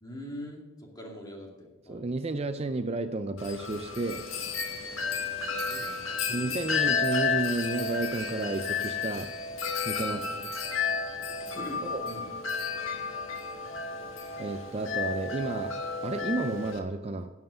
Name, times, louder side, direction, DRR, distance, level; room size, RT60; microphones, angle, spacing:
voice 1, 0.0-2.1 5.0-6.6 10.0-10.3 11.5-12.3, equal, 20° left, 0 dB, 2.3 m, -44 dB
voice 2, 1.9-4.2 6.3-9.3 9.9-10.2 11.9-12.0 14.4-17.3, right 2 dB, 30° right, 9 dB, 0.4 m, -32 dB
Wind chime, 3.4-16.8, left 5 dB, 75° left, 1.5 m, -32 dB
11.0 x 7.7 x 6.8 m, 1.1 s
head